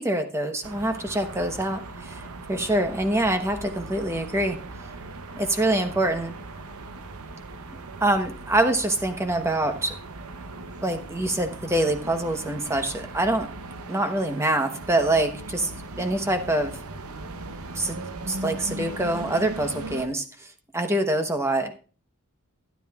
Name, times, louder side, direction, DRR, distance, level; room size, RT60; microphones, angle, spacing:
voice 1, 0.0-4.6 5.4-6.3 8.0-9.9 10.8-13.5 13.9-15.7 16.0-16.7 17.7-20.5 20.7-21.9, right 1 dB, 10° right, 6 dB, 1.0 m, -25 dB
sound 1, 0.6-20.1, right 2 dB, 80° right, 0.8 m, -39 dB
12.5 x 10.5 x 2.4 m, 0.37 s
head